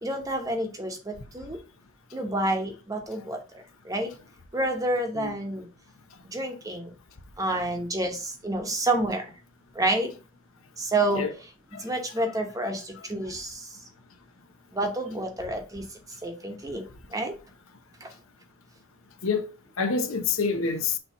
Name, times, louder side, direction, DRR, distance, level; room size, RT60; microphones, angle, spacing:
voice 1, 0.0-1.6 2.1-3.4 3.9-4.1 4.5-5.6 6.3-6.9 7.4-9.2 9.8-10.1 10.8-11.2 11.8-13.5 14.7-15.8 16.2-16.8 17.1-17.3 18.0-18.1, right 1 dB, 15° right, 0.9 m, -28 dB
voice 2, 19.8-21.0, left 5 dB, 70° left, 0.8 m, -27 dB
6.4 x 3.0 x 5.3 m
head